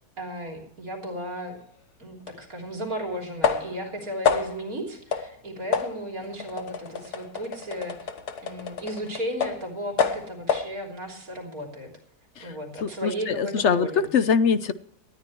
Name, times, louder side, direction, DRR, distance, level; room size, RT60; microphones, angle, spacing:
voice 1, 0.2-1.6 2.0-8.1 8.4-11.9 12.4-14.1, equal, 60° right, 1 dB, 3.8 m, -35 dB
sound 1, 2.3-2.4 3.4-3.9 4.2-4.7 5.1-5.3 5.7-9.7 10.0-10.7, left 6 dB, 75° left, 1.7 m, -28 dB
voice 2, 12.8-14.7, left 6 dB, 55° left, 13 dB, 1.0 m, -23 dB
19.0 x 13.5 x 3.1 m, 0.64 s
omnidirectional pair, 1.7 m